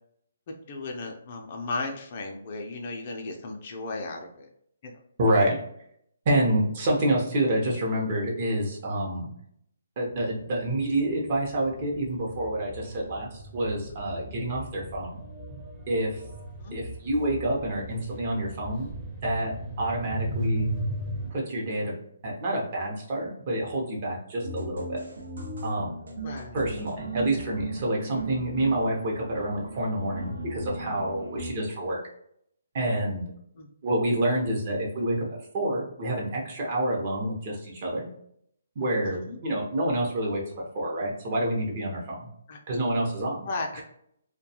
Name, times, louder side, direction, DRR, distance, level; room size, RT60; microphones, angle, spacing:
voice 1, 0.7-4.5 4.8-4.9 16.6-16.8 26.2-26.6 33.6-33.7 39.0-39.4 42.5-42.6 43.5-43.8, left 3 dB, 40° left, 2 dB, 0.4 m, -35 dB
voice 2, 5.2-5.6 6.2-9.3 10.0-15.2 15.9-16.2 16.7-18.9 19.2-19.5 19.8-20.7 21.3-21.9 22.2-25.0 25.6-25.9 26.5-32.0 32.7-33.2 33.8-38.0 38.8-42.3 42.7-43.5 43.7-43.8, right 1 dB, 40° right, -2 dB, 0.7 m, -28 dB
sound 1, 10.1-10.2 10.6-21.3, right 1 dB, ahead, 0.6 m, -36 dB
sound 2, 24.4-31.5, right 2 dB, 85° right, 0.6 m, -38 dB
2.3 x 2.2 x 2.8 m, 0.71 s
hypercardioid pair, 155°, 0 cm